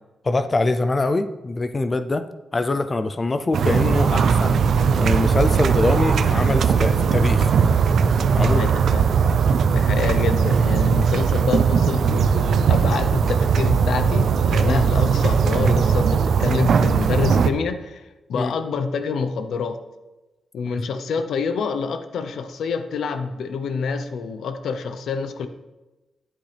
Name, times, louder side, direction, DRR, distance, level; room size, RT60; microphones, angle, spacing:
voice 1, 0.2-4.6 5.0-7.5 8.3-8.6 14.7-14.8 18.3-18.5 20.8-20.9, left 2 dB, 25° left, 10 dB, 0.4 m, -23 dB
sound 1, 3.5-17.5, right 6 dB, 70° right, 0.5 m, -19 dB
voice 2, 8.4-9.1 9.7-19.8 20.5-25.5, left 5 dB, 85° left, 9 dB, 0.7 m, -27 dB
10.5 x 8.9 x 3.4 m, 1.1 s
wide cardioid pair, 160°, 0 cm